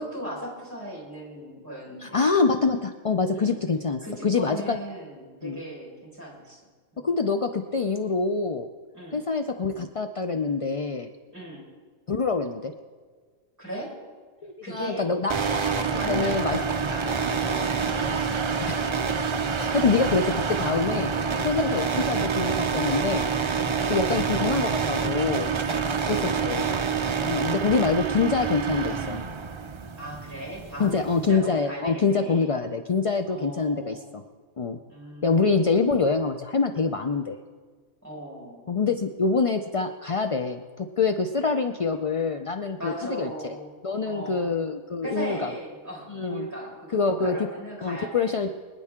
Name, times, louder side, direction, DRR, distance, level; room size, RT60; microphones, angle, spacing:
voice 1, 0.0-2.2 3.3-3.6 4.0-6.6 6.9-7.1 8.9-9.2 11.3-11.6 13.6-13.9 14.6-15.1 15.9-18.7 20.9-21.8 25.6-26.8 30.0-32.6 33.3-34.1 34.9-35.5 38.0-38.6 42.8-43.7 44.0-44.5 45.0-48.3, equal, 10° right, -4 dB, 5.0 m, -38 dB
voice 2, 2.0-4.8 5.4-5.6 7.0-8.7 9.1-11.1 12.1-12.7 14.4-16.6 18.7-18.8 19.6-21.1 21.4-23.3 23.9-25.5 26.1-26.7 27.3-29.2 30.8-34.2 34.6-34.8 35.2-37.4 38.7-43.6 43.8-45.5 46.1-46.5 46.9-47.4 47.8-48.5, left 4 dB, 55° left, 6 dB, 0.3 m, -25 dB
sound 1, 15.3-31.3, right 5 dB, 50° right, 0.3 m, -27 dB
24.5 x 10.0 x 3.7 m, 1.5 s
omnidirectional pair, 1.4 m